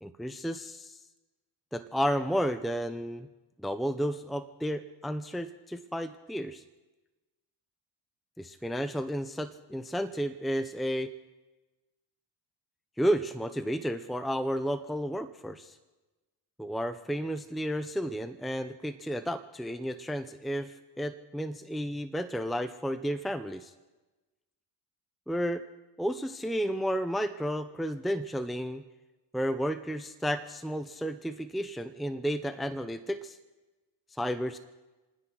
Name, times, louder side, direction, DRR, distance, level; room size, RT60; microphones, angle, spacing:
voice 1, 0.0-1.0 1.7-3.3 3.6-6.6 8.4-11.1 13.0-15.8 16.6-23.7 25.3-25.6 26.0-28.8 29.3-33.4 34.2-34.6, equal, ahead, 12 dB, 0.8 m, -32 dB
29.0 x 9.9 x 4.7 m, 1.2 s
hypercardioid pair, 60°, 47 cm